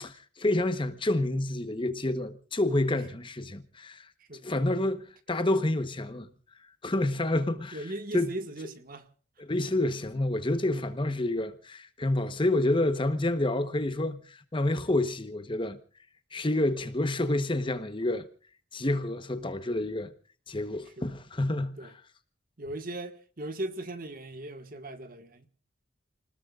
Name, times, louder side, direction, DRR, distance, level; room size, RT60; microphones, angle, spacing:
voice 1, 0.0-4.1 4.4-6.3 6.8-7.8 8.1-8.3 9.4-15.8 16.3-18.3 18.7-20.1 20.5-21.8, left 1 dB, 25° left, 1.0 m, -28 dB
voice 2, 7.7-9.1 9.6-9.7 20.8-21.1 21.8-21.9 22.6-25.5, right 1 dB, 45° right, 1.5 m, -38 dB
29.5 x 20.0 x 2.4 m
head